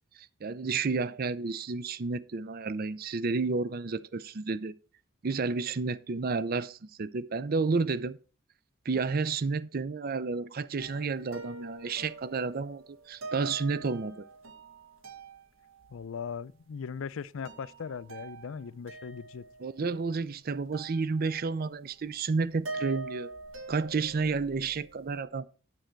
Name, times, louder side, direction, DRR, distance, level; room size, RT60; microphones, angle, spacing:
voice 1, 0.2-4.7 5.2-8.2 8.9-14.2 19.6-23.3 23.7-25.5, right 4 dB, 45° right, 0.5 m, -31 dB
sound 1, 10.8-16.0 17.1-17.2 17.4-20.2 20.7-21.6 21.9-25.2, right 3 dB, 75° right, 1.4 m, -44 dB
voice 2, 15.9-19.4, left 6 dB, 75° left, 0.4 m, -39 dB
9.0 x 8.3 x 4.5 m
head